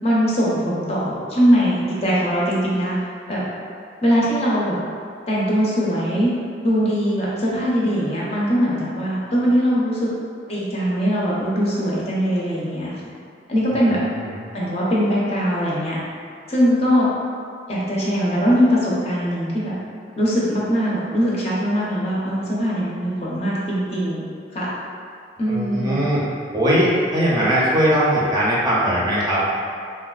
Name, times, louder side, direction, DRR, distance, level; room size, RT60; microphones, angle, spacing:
voice 1, 0.0-3.0 3.3-3.4 4.0-4.8 5.3-6.3 6.6-10.1 10.5-12.9 13.5-14.0 14.5-16.0 16.5-17.1 17.7-19.7 20.2-24.2 24.5-24.7 25.4-25.9, equal, 35° left, -7 dB, 0.6 m, -21 dB
voice 2, 13.9-14.4 25.5-26.2 26.5-29.5, equal, 20° right, -8 dB, 0.5 m, -20 dB
3.5 x 2.2 x 2.3 m, 2.2 s
head